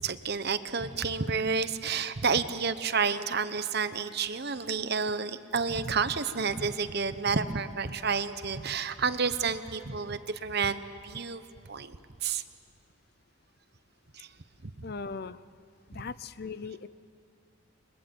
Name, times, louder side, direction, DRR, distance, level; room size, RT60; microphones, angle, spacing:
voice 1, 0.0-12.4 14.1-14.3 14.6-14.7 15.9-16.0, right 5 dB, 50° right, 12 dB, 0.9 m, -30 dB
voice 2, 14.8-15.4 15.9-16.9, left 4 dB, 45° left, 15 dB, 0.6 m, -38 dB
30.0 x 22.5 x 7.9 m, 2.4 s
head